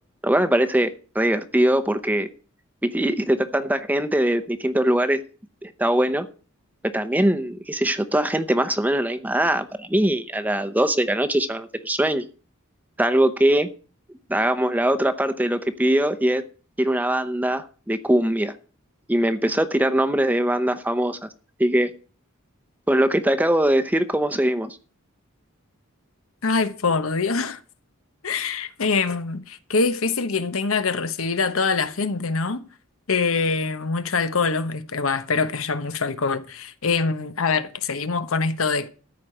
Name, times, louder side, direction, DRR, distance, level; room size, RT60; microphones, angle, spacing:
voice 1, 0.2-2.3 2.8-5.2 5.6-6.3 6.8-12.2 13.0-13.7 14.3-16.4 16.8-18.5 19.1-21.2 21.6-21.9 22.9-24.8, right 1 dB, 10° right, 0.8 m, -21 dB
voice 2, 26.4-27.6 28.2-32.6 33.1-38.9, left 4 dB, 75° left, 1.0 m, -24 dB
14.0 x 4.9 x 8.8 m
head